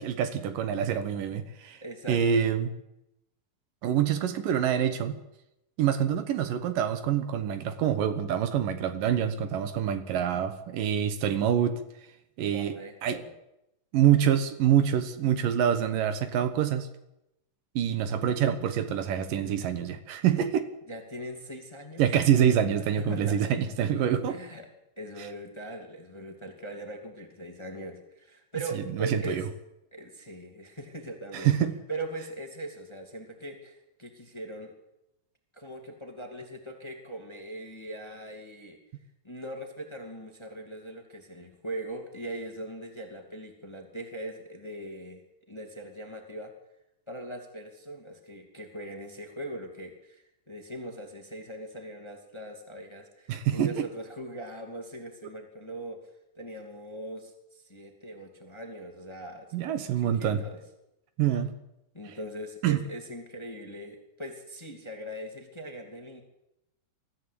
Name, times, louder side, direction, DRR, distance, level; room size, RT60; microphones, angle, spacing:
voice 1, 0.0-1.8 2.1-2.7 3.8-5.2 5.8-11.8 12.4-12.8 13.0-13.2 13.9-16.9 17.8-20.7 22.0-24.4 28.7-29.4 31.3-31.7 53.3-53.9 59.5-60.4 61.2-61.5 62.6-62.8, right 9 dB, 75° right, 10 dB, 2.8 m, -26 dB
voice 2, 1.8-2.5 12.5-13.3 20.9-22.1 23.0-23.5 24.2-24.7 25.0-29.4 29.9-31.5 31.9-34.7 35.5-38.8 39.2-45.2 45.5-46.5 47.1-56.0 56.4-59.6 60.0-60.6 61.9-66.2, right 1 dB, 10° left, 4 dB, 2.0 m, -40 dB
22.5 x 14.0 x 8.5 m, 0.86 s
omnidirectional pair, 4.1 m